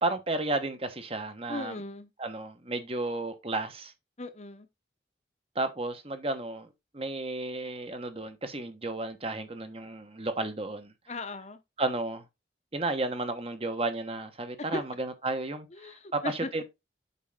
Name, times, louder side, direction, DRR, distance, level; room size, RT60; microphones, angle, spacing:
voice 1, 0.0-1.8 2.2-3.9 5.5-6.7 6.9-10.9 11.8-12.2 12.7-16.6, right 2 dB, 30° right, 1.3 m, -33 dB
voice 2, 1.5-2.1 4.2-4.7 11.1-11.6 14.7-14.8 15.7-16.5, left 2 dB, 35° left, 0.9 m, -37 dB
8.1 x 5.4 x 3.8 m
head